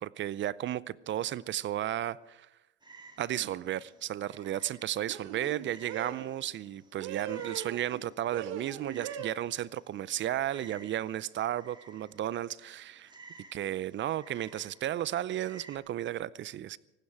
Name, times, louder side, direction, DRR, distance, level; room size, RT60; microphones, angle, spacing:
voice 1, 0.0-2.5 3.2-13.1 13.5-16.8, right 12 dB, 30° right, 0.5 m, -34 dB
Frog, 2.8-15.8, right 3 dB, 10° right, 2.3 m, -56 dB
sound 1, 3.3-3.6 5.1-6.3 7.0-8.0 8.3-9.3, right 9 dB, 65° right, 1.9 m, -40 dB
19.0 x 15.5 x 4.8 m
supercardioid pair, 100°, 37 cm